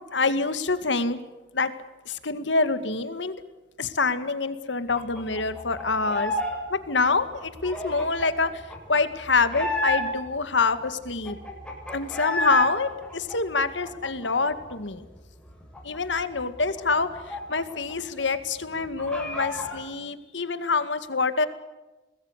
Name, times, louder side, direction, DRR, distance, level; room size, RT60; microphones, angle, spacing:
voice 1, 0.1-1.2 1.5-1.7 2.1-3.4 3.8-6.3 6.7-8.6 8.9-11.4 11.9-15.0 15.8-21.5, left 4 dB, 80° left, 11 dB, 2.1 m, -26 dB
sound 1, 4.9-6.6 6.8-10.4 10.8-10.9 11.0-12.7 13.0-14.7 15.0-15.2 15.5-17.9 18.2-18.3 18.6-19.8, left 1 dB, 5° left, 7.2 m, -31 dB
25.5 x 20.5 x 8.2 m, 1.1 s
head